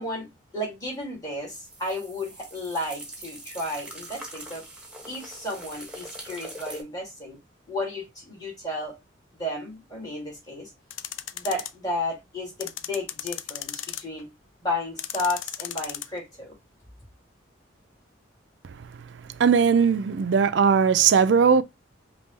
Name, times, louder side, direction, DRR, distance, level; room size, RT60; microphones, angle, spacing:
voice 1, 0.0-4.6 5.0-7.4 7.7-8.9 9.3-10.7 11.3-14.3 14.6-16.5, left 1 dB, 20° left, 2.4 m, -33 dB
sound 1, 1.5-6.8, right 1 dB, 5° right, 1.0 m, -42 dB
sound 2, 10.9-11.7 12.6-14.2 15.0-16.1, left 12 dB, 85° left, 0.4 m, -35 dB
voice 2, 19.4-21.6, right 6 dB, 65° right, 0.4 m, -19 dB
5.3 x 2.4 x 3.2 m
head